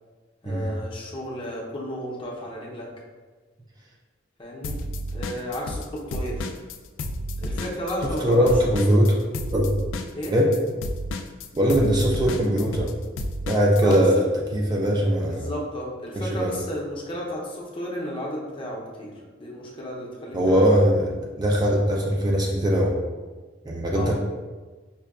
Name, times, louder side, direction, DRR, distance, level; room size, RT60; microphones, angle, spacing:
voice 1, 0.4-2.9 4.4-4.8 5.1-6.5 7.4-8.5 10.1-10.3 13.8-14.2 15.3-19.1 19.4-20.8 23.9-24.1, equal, 25° left, -3 dB, 0.6 m, -33 dB
sound 1, 4.6-5.9 6.1-14.0, left 1 dB, 80° left, 0.3 m, -31 dB
voice 2, 8.0-9.2 9.5-9.7 10.3-10.6 11.5-12.9 13.5-15.5 16.1-16.6 20.3-23.0 23.6-24.1, equal, 20° right, -2 dB, 0.3 m, -21 dB
5.5 x 2.2 x 2.3 m, 1.3 s
head